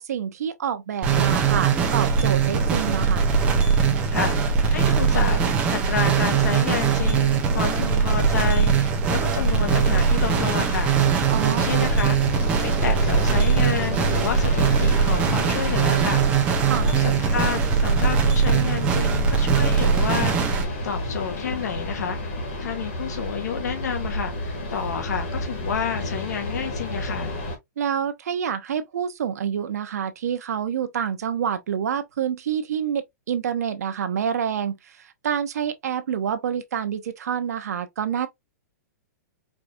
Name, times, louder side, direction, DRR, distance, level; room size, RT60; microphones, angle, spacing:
voice 1, 0.0-3.3 11.3-11.7 16.7-16.9 27.8-35.0 35.2-38.3, right 8 dB, 60° right, 0.8 m, -27 dB
sound 1, 1.0-20.6, right 6 dB, 10° right, 0.6 m, -21 dB
voice 2, 4.1-10.9 11.4-16.2 16.8-22.2 22.6-27.3, left 7 dB, 65° left, 1.3 m, -30 dB
sound 2, 9.6-27.6, left 1 dB, 40° left, 1.5 m, -31 dB
4.6 x 2.6 x 2.3 m
hypercardioid pair, 175°, 10 cm